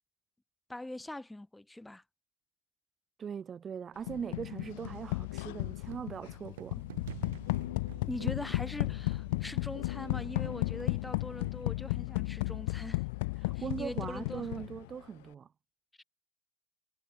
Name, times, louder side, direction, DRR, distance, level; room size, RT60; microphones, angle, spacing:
voice 1, 0.7-2.0 8.1-13.0 13.5-14.6 16.0-16.1, left 1 dB, 5° left, 2.8 m, -42 dB
voice 2, 3.2-6.8 13.4-15.5, right 7 dB, 20° right, 2.6 m, -40 dB
sound 1, 4.1-14.9, left 23 dB, 65° left, 0.6 m, -35 dB
sound 2, 4.9-6.3 6.5-6.6 7.5-8.8 9.7-11.7, left 16 dB, 85° left, 6.3 m, -47 dB
sound 3, 5.9-11.7, right 17 dB, 75° right, 1.8 m, -50 dB
supercardioid pair, 160°, 0 cm